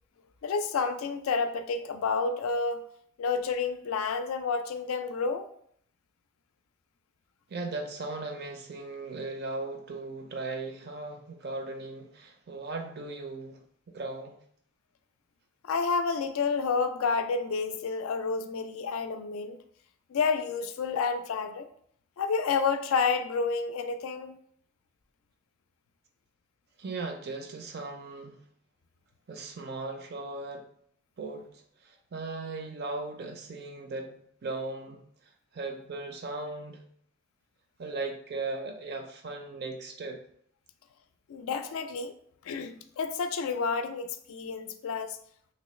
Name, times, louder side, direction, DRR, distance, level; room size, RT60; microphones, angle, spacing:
voice 1, 0.4-2.8 3.2-5.5 15.6-19.6 20.1-21.7 22.2-24.4 41.3-42.1 42.4-45.2, left 5 dB, 80° left, 9 dB, 0.4 m, -30 dB
voice 2, 7.5-14.4 26.8-28.5 29.3-30.6 31.2-35.0 35.5-36.9 37.8-40.2, right 3 dB, 50° right, 5 dB, 0.5 m, -38 dB
3.0 x 2.9 x 3.1 m, 0.64 s
head